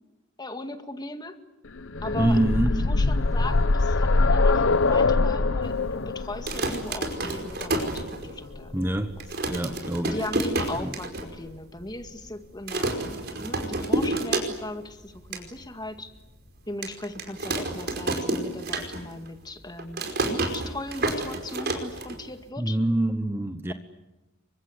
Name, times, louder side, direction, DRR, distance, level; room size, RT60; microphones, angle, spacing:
voice 1, 0.4-1.4 2.0-2.4 2.9-9.0 10.0-16.1 16.7-22.8, left 1 dB, 20° left, 2.1 m, -38 dB
sound 1, 1.8-9.6 10.7-10.8 11.2-11.3, left 3 dB, 80° left, 0.9 m, -24 dB
voice 2, 2.2-2.7 8.7-9.1 9.5-10.2 10.8-10.9 22.6-23.7, right 1 dB, 10° right, 1.2 m, -25 dB
sound 2, 6.3-8.6 8.9-9.0 9.2-11.3 11.6-11.7 11.9-12.3 12.7-14.8 15.1-15.4 16.0-16.1 16.8-19.3 19.5-22.5, right 2 dB, 55° right, 5.1 m, -29 dB
29.5 x 24.5 x 8.2 m
head